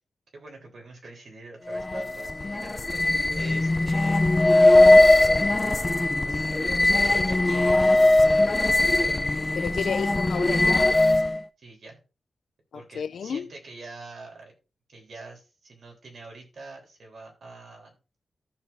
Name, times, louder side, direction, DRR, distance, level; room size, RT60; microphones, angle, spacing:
voice 1, 0.3-3.0 3.4-4.4 6.2-6.5 6.9-8.0 8.5-9.8 11.6-12.0 12.7-14.5 14.9-18.0, right 3 dB, 55° right, 3.6 m, -45 dB
sound 1, 1.7-11.4, left 2 dB, 25° left, 0.5 m, -20 dB
voice 2, 9.6-10.9 12.7-13.5, left 7 dB, 75° left, 0.4 m, -32 dB
14.0 x 6.7 x 2.7 m
wide cardioid pair, 140°, 0 cm